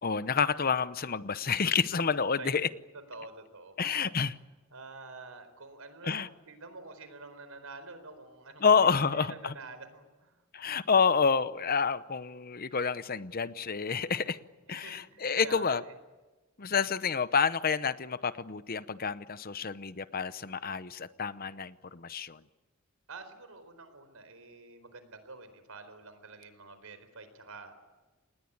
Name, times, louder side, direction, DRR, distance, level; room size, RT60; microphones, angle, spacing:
voice 1, 0.0-2.7 3.8-4.3 6.0-6.3 8.6-9.5 10.5-14.4 14.7-15.8 16.6-22.4, left 5 dB, 45° left, 14 dB, 0.8 m, -29 dB
voice 2, 2.4-2.7 3.1-4.2 4.7-10.4 14.7-15.9 23.1-27.8, right 3 dB, 75° right, 10 dB, 4.3 m, -48 dB
27.5 x 20.5 x 8.7 m, 1.2 s
head